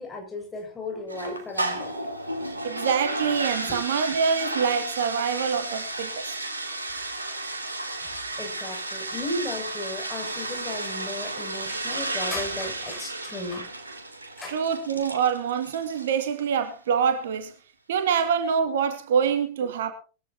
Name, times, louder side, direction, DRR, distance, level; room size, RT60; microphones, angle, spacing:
voice 1, 0.0-1.9 3.7-3.8 7.0-7.4 8.4-13.6 14.4-14.6, left 2 dB, 15° left, 6.7 m, -35 dB
sound 1, 1.1-16.4, right 2 dB, 80° right, 3.0 m, -33 dB
voice 2, 2.6-6.4 14.5-17.5 17.9-19.9, right 7 dB, 60° right, 2.3 m, -25 dB
22.0 x 15.5 x 2.8 m
figure-of-eight pair, 90°, 0 cm